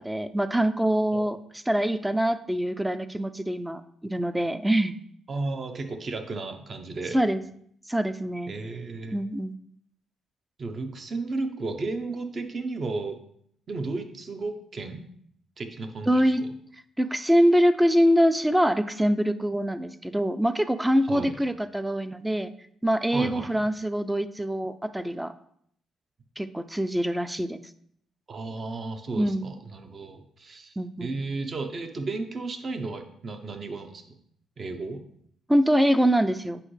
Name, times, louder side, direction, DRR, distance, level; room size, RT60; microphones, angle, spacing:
voice 1, 0.0-1.4 1.7-4.9 7.1-7.4 7.9-8.6 9.1-9.5 16.1-16.4 17.0-22.5 22.8-25.3 26.4-27.6 29.2-29.5 30.8-31.1 35.5-36.6, equal, 10° right, 12 dB, 0.5 m, -24 dB
voice 2, 5.3-7.2 8.5-9.2 10.6-13.2 13.7-15.0 15.6-16.5 21.1-21.3 23.1-23.5 28.3-34.2 34.6-35.0, right 3 dB, 45° right, 6 dB, 0.9 m, -34 dB
8.5 x 5.4 x 3.3 m, 0.68 s
cardioid pair, 90°, 0 cm